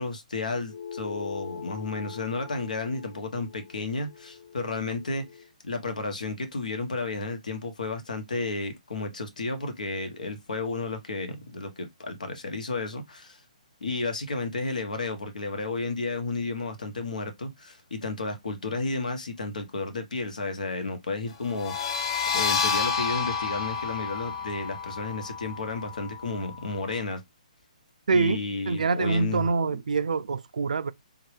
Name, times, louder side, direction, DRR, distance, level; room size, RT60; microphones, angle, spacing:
voice 1, 0.0-5.2 5.6-13.4 13.8-22.0 22.3-27.2 28.1-29.5, left 3 dB, 75° left, 1.1 m, -32 dB
sound 1, 0.7-5.5, left 7 dB, 60° left, 0.5 m, -42 dB
sound 2, 21.5-27.0, left 5 dB, 45° left, 0.9 m, -30 dB
voice 2, 28.1-28.4 28.7-30.9, right 4 dB, 75° right, 0.4 m, -25 dB
3.6 x 2.9 x 3.2 m
hypercardioid pair, 140°, 4 cm